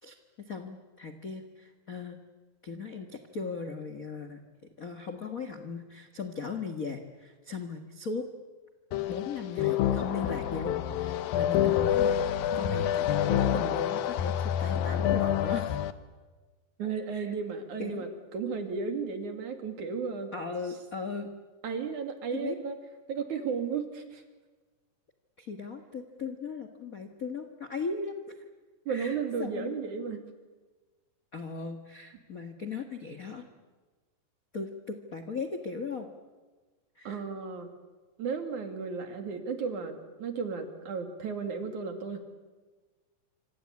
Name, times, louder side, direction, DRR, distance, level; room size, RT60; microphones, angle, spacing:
voice 1, 0.0-2.2 2.6-4.4 4.8-8.3 9.1-15.7 17.1-17.3 17.8-18.0 20.3-21.3 22.3-22.6 25.4-28.1 28.9-29.8 31.3-33.5 34.5-36.1 36.9-37.2, left 4 dB, 50° left, 6 dB, 1.0 m, -38 dB
sound 1, 8.9-15.9, left 10 dB, 80° left, 2.8 m, -27 dB
voice 2, 16.8-20.3 21.6-22.8 23.1-24.2 28.9-30.2 37.1-37.7 38.2-42.2, right 5 dB, 60° right, 6 dB, 3.8 m, -34 dB
27.0 x 25.5 x 8.5 m, 1.3 s
omnidirectional pair, 4.0 m